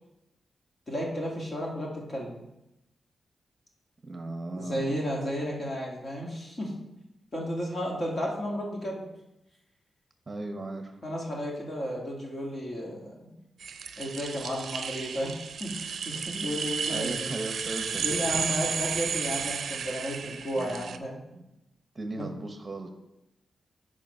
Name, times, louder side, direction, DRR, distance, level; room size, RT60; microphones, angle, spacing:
voice 1, 0.9-2.4 4.5-6.7 7.3-9.0 11.0-13.4 14.0-17.3 18.0-21.2 22.2-22.3, equal, 40° left, -2 dB, 2.2 m, -33 dB
voice 2, 4.0-4.9 10.3-11.0 16.9-18.3 20.6-21.1 21.3-21.5 21.9-22.9, right 2 dB, 30° right, 5 dB, 0.9 m, -37 dB
sound 1, 13.6-21.0, right 6 dB, 70° right, 0.5 m, -33 dB
7.2 x 4.9 x 5.5 m, 0.91 s
cardioid pair, 105°, 0 cm